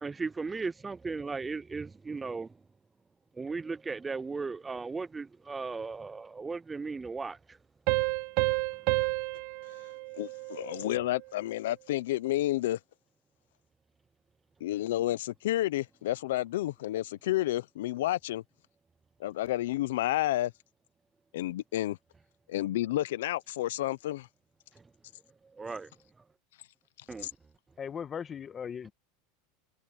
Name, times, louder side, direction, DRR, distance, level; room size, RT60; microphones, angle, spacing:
voice 1, 0.0-2.5 3.4-7.4 25.6-25.9 27.1-27.3, right 4 dB, 15° right, 0.4 m, -36 dB
sound 1, 7.9-11.2, right 22 dB, 60° right, 0.9 m, -31 dB
voice 2, 10.2-12.8 14.6-18.4 19.2-20.5 21.3-22.0 22.5-24.3 27.2-27.3, left 15 dB, 85° left, 0.6 m, -30 dB
voice 3, 27.8-28.9, left 7 dB, 25° left, 1.6 m, -38 dB
supercardioid pair, 135°, 0 cm